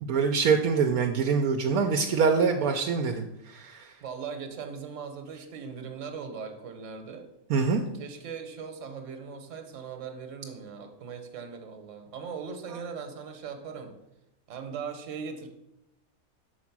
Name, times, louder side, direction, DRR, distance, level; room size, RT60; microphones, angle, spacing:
voice 1, 0.0-3.9 7.5-7.8, right 5 dB, 80° right, 4 dB, 1.0 m, -25 dB
voice 2, 4.0-7.3 7.8-14.0 14.5-15.5, right 6 dB, 60° right, 6 dB, 1.3 m, -39 dB
6.0 x 4.7 x 5.9 m, 0.90 s
omnidirectional pair, 1.5 m